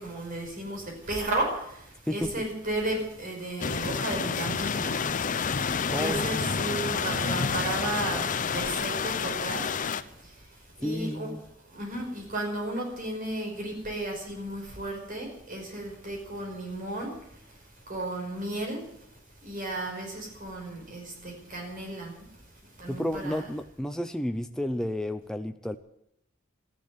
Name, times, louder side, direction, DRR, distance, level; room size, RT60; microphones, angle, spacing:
voice 1, 0.0-5.0 5.3-11.3 11.6-23.4, right 1 dB, 45° right, 1 dB, 5.3 m, -34 dB
sound 1, 3.6-10.0, left 5 dB, 40° left, 0.7 m, -29 dB
voice 2, 5.9-6.5 10.8-11.4 22.9-25.8, left 1 dB, 5° left, 7 dB, 0.5 m, -31 dB
13.5 x 10.5 x 9.6 m, 0.77 s
head